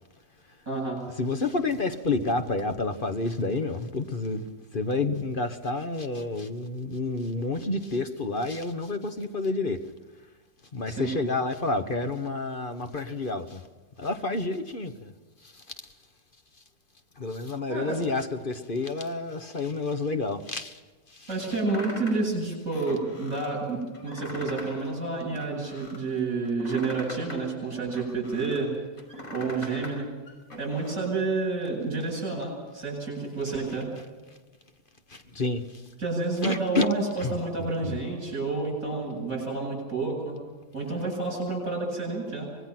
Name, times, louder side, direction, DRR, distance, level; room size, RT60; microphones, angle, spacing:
voice 1, 0.7-1.0 10.9-11.1 17.7-18.0 21.3-28.7 29.3-30.1 30.6-33.9 36.0-40.4 40.7-42.5, right 3 dB, 50° right, 8.6 m, -29 dB
voice 2, 1.2-4.4 4.7-9.8 10.7-13.6 14.0-15.1 15.4-15.9 17.2-20.8 21.1-21.4 35.1-35.9 36.4-36.9 37.2-37.3 37.8-38.0, left 3 dB, 35° left, 1.3 m, -29 dB
sound 1, 21.7-22.3 22.7-23.5 23.9-24.8 25.1-26.0 26.4-28.6 29.0-29.9 30.3-30.9, left 1 dB, 50° left, 5.9 m, -41 dB
25.0 x 21.0 x 6.1 m
omnidirectional pair, 1.8 m